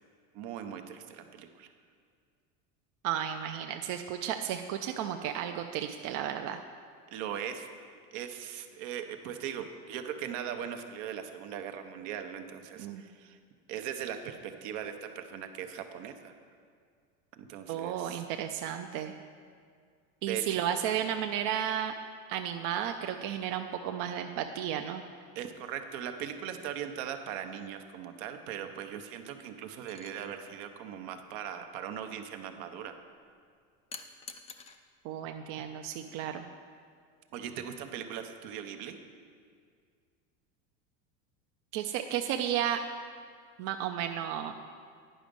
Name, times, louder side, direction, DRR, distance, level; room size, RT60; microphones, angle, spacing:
voice 1, 0.3-1.7 7.1-7.7 8.1-13.4 13.7-16.3 17.4-18.2 20.3-20.6 25.3-32.9 37.3-39.0, right 9 dB, 70° right, 7 dB, 0.9 m, -39 dB
voice 2, 3.0-6.6 12.8-13.0 17.7-19.2 20.2-21.9 22.3-25.0 35.0-36.4 41.7-42.8 43.6-44.5, right 10 dB, 50° right, 5 dB, 0.5 m, -33 dB
sound 1, 29.9-30.1 33.9-34.8 36.2-36.4, left 5 dB, 15° left, 0.3 m, -46 dB
9.9 x 5.1 x 5.2 m, 2.1 s
supercardioid pair, 115°, 39 cm